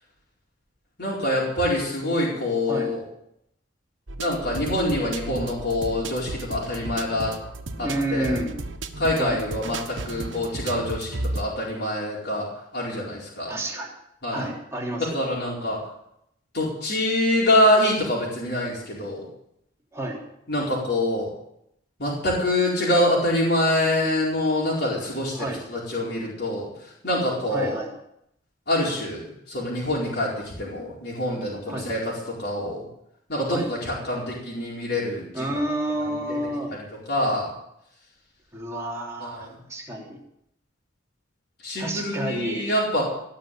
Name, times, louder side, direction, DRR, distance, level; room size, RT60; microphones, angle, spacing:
voice 1, 1.0-3.0 4.2-7.3 7.8-8.4 9.0-12.5 12.7-13.5 14.2-14.5 15.1-15.8 16.5-19.3 20.5-21.3 22.0-27.8 28.7-32.0 32.4-32.8 33.3-35.4 36.0-36.4 37.1-37.5 39.2-39.5 41.6-43.0, left 1 dB, 60° left, -5 dB, 4.6 m, -25 dB
sound 1, 4.1-11.4, right 2 dB, 80° right, 1.2 m, -34 dB
voice 2, 7.8-8.6 9.2-9.4 13.5-13.9 14.3-15.2 19.9-20.2 25.3-25.6 27.5-27.9 31.7-31.8 33.5-33.7 35.3-36.7 38.5-40.2 41.8-42.7, right 1 dB, 15° right, -3 dB, 3.1 m, -30 dB
18.0 x 6.7 x 9.1 m, 0.77 s
head